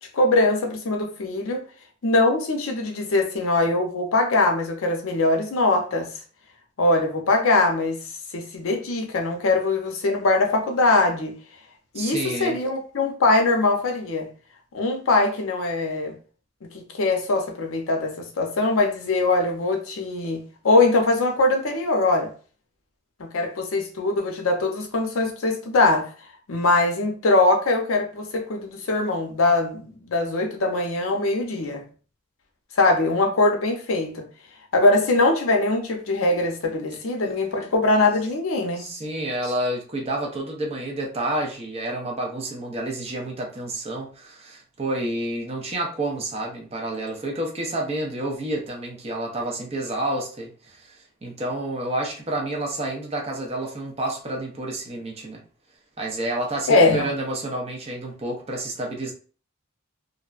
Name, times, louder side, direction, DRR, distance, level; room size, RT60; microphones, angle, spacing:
voice 1, 0.1-1.6 2.0-6.1 6.8-8.0 8.3-11.3 11.9-14.3 14.7-16.2 16.7-22.3 23.2-26.1 26.5-31.9 32.8-34.3 34.7-38.9 56.7-57.1, left 2 dB, 75° left, 0.6 m, -22 dB
voice 2, 11.9-12.6 38.8-55.4 56.0-59.1, right 1 dB, 30° right, 0.6 m, -29 dB
2.5 x 2.1 x 2.4 m
head